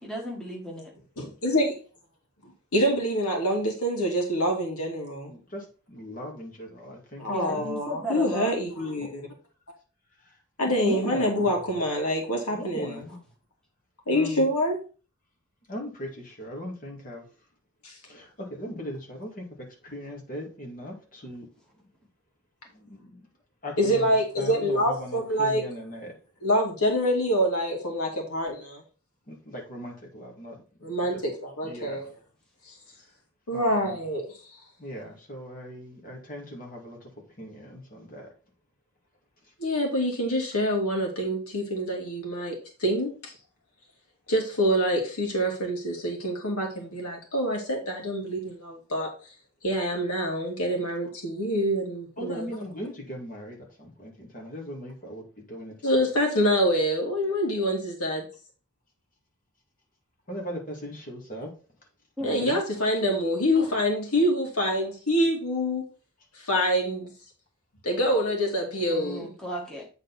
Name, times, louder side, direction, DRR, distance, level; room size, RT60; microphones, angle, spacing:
voice 1, 0.0-0.9 7.3-8.5 62.2-62.4 68.9-69.9, equal, 5° left, 1.6 m, -34 dB
voice 2, 1.2-1.8 2.7-5.3 7.2-9.2 10.6-13.0 14.1-14.8 17.8-17.9 23.8-25.6 26.4-28.8 30.8-32.1 33.5-34.3 39.6-43.3 44.3-49.1 49.6-52.5 55.8-58.3 62.2-65.8 66.5-67.1 67.8-69.3, equal, 90° left, 2.3 m, -26 dB
voice 3, 5.3-7.7 9.0-9.1 10.7-11.5 12.5-13.2 14.1-14.5 15.7-17.3 18.1-19.4 19.8-21.5 22.7-23.2 23.6-24.1 24.4-26.1 29.3-31.2 31.6-32.1 33.5-34.0 34.8-37.1 37.4-38.3 52.2-55.7 60.3-61.5 62.2-62.6, equal, 40° left, 2.3 m, -38 dB
8.4 x 4.0 x 4.1 m
head